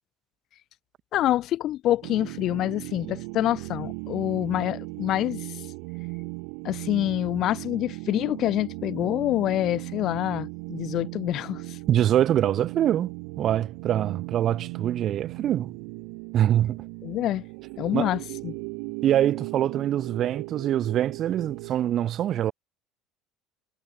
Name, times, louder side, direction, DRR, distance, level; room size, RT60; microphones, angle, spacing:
voice 1, 1.1-5.6 6.6-11.8 17.0-17.4 17.8-18.5, left 13 dB, 55° left, 1.7 m, -26 dB
sound 1, 2.0-21.7, right 40 dB or more, 80° right, 2.6 m, -37 dB
voice 2, 11.9-15.8 16.3-16.9 17.9-18.1 19.0-22.5, right 11 dB, 45° right, 1.1 m, -24 dB
supercardioid pair, 115°, 0 cm